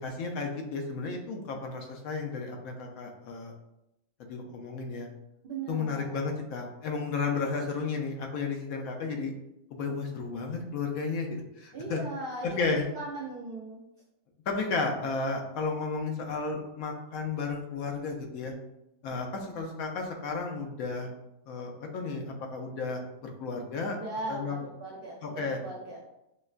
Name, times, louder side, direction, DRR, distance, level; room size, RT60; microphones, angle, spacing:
voice 1, 0.0-3.5 4.2-5.1 5.7-9.3 9.7-12.0 12.4-12.9 14.5-18.5 19.0-21.1 21.5-24.0 24.3-24.6 25.2-25.6, left 4 dB, 75° left, 2 dB, 1.0 m, -33 dB
voice 2, 5.4-6.2 11.7-13.8 24.0-26.0, right 3 dB, 60° right, -4 dB, 0.6 m, -38 dB
5.2 x 2.2 x 2.4 m, 0.87 s
omnidirectional pair, 1.5 m